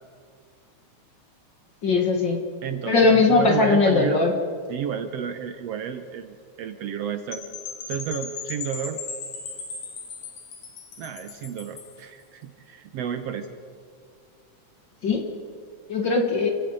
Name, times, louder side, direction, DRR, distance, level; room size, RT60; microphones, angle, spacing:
voice 1, 1.8-2.4 2.9-4.3 15.0-15.3 15.9-16.5, left 3 dB, 45° left, 3 dB, 2.0 m, -19 dB
voice 2, 2.6-4.2 4.7-7.5 7.9-9.0 11.0-13.5, right 8 dB, 65° right, 8 dB, 1.8 m, -31 dB
Percussion / Wind chime, 7.3-12.0, left 5 dB, 85° left, 3.9 m, -37 dB
29.0 x 16.5 x 5.5 m, 2.2 s
omnidirectional pair, 3.4 m